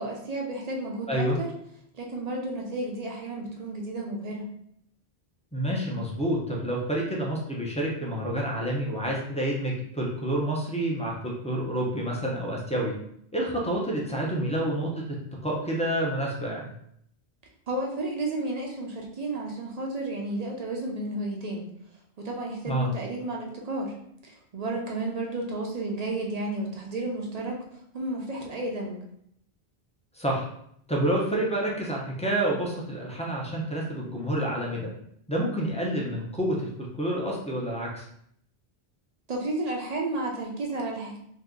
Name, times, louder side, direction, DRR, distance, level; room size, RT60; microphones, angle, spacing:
voice 1, 0.0-1.5 1.9-4.5 17.7-21.6 22.2-23.9 24.2-27.6 27.9-29.0 39.3-41.2, right 2 dB, 45° right, -1 dB, 0.6 m, -32 dB
voice 2, 1.1-1.4 5.5-12.9 13.3-14.9 15.4-16.6 22.7-22.9 30.1-30.5 30.9-34.9 35.3-36.7 37.0-38.0, right 1 dB, 10° left, -3 dB, 0.4 m, -28 dB
2.7 x 2.3 x 3.6 m, 0.70 s
omnidirectional pair, 1.1 m